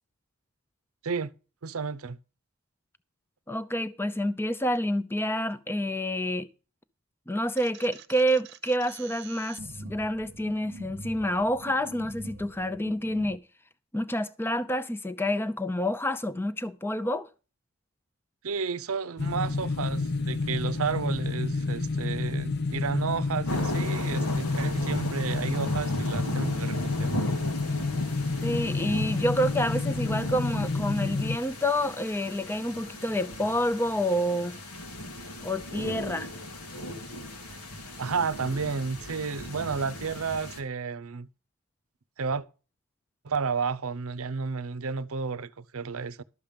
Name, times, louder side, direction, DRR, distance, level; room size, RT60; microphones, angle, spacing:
voice 1, 1.6-2.2 18.4-27.1 38.0-41.3 42.2-42.4 43.2-46.2, right 5 dB, 75° right, 0.7 m, -32 dB
voice 2, 3.5-6.5 7.3-13.4 13.9-17.3 27.2-27.3 28.4-34.6 35.4-36.3, equal, 10° left, 0.6 m, -28 dB
sound 1, 7.6-13.4, right 3 dB, 50° right, 0.9 m, -45 dB
sound 2, 19.2-31.4, left 3 dB, 45° left, 0.7 m, -29 dB
sound 3, 23.5-40.6, equal, 90° left, 2.2 m, -37 dB
12.5 x 7.2 x 5.3 m
head